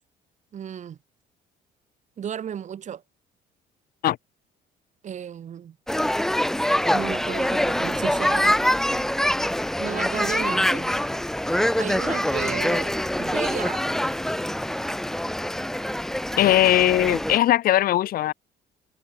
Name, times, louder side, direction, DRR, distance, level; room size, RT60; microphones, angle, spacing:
voice 1, 0.5-1.0 2.2-3.0 5.0-5.8 6.9-8.6 9.8-11.0 11.8-12.9 13.2-13.9, right 9 dB, 45° right, 1.9 m, -33 dB
sound 1, 5.9-17.4, left 1 dB, 5° left, 0.6 m, -24 dB
voice 2, 16.3-18.3, left 13 dB, 60° left, 0.7 m, -19 dB
cardioid pair, 110°, 17 cm